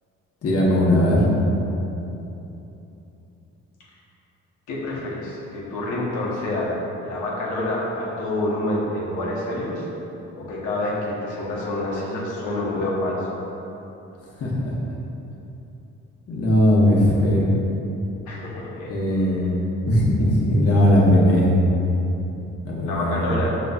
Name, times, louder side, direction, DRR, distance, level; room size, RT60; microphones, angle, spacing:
voice 1, 0.4-1.2 14.4-14.7 16.3-17.5 18.9-19.6 19.9-21.5 22.6-23.2, equal, 50° left, -4 dB, 0.9 m, -18 dB
voice 2, 4.7-6.8 7.0-9.9 10.3-13.3 18.3-19.2 22.8-23.5, left 1 dB, 90° left, -5 dB, 0.9 m, -27 dB
5.2 x 3.0 x 2.3 m, 3.0 s
cardioid pair, 90°, 30 cm